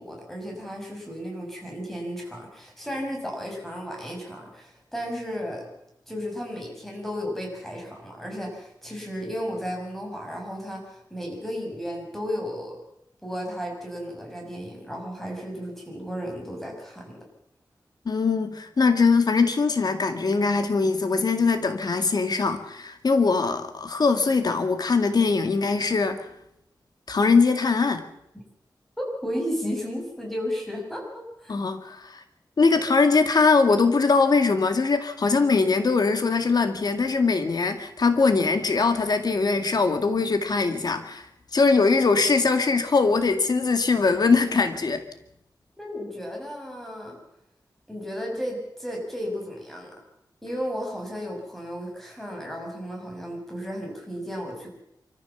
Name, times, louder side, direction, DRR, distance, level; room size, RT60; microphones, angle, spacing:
voice 1, 0.0-5.7 6.1-12.8 13.2-17.2 29.0-31.0 31.4-31.5 32.7-32.8 45.8-47.2 47.9-49.9 50.4-54.7, equal, 5° left, 0 dB, 6.7 m, -34 dB
voice 2, 18.1-26.2 27.1-28.0 31.5-32.2 32.6-41.3 41.5-45.0, left 4 dB, 55° left, 7 dB, 2.1 m, -21 dB
25.5 x 14.0 x 7.2 m, 0.78 s
wide cardioid pair, 130°, 8 cm